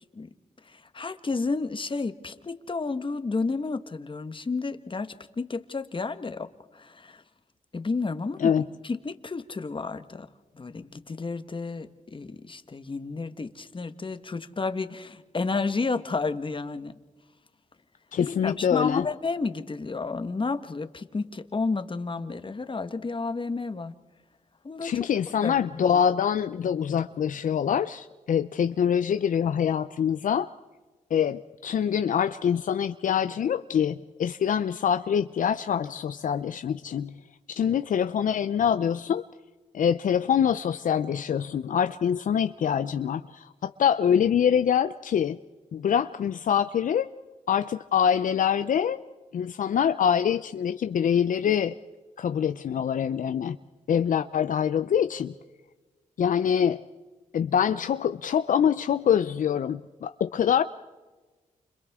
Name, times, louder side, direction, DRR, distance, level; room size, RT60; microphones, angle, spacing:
voice 1, 0.7-6.5 6.7-7.2 7.7-8.5 8.8-10.3 10.6-16.9 18.2-23.9 24.6-24.9 25.4-25.8, left 4 dB, 35° left, 10 dB, 1.4 m, -31 dB
voice 2, 18.1-19.1 24.8-30.5 31.1-37.1 37.5-39.2 39.7-45.4 45.7-47.1 47.5-49.0 49.3-51.7 52.2-53.6 53.9-55.3 56.2-56.8 57.3-60.6, left 8 dB, 70° left, 11 dB, 0.6 m, -25 dB
29.0 x 27.0 x 3.7 m, 1.3 s
cardioid pair, 55°, 14 cm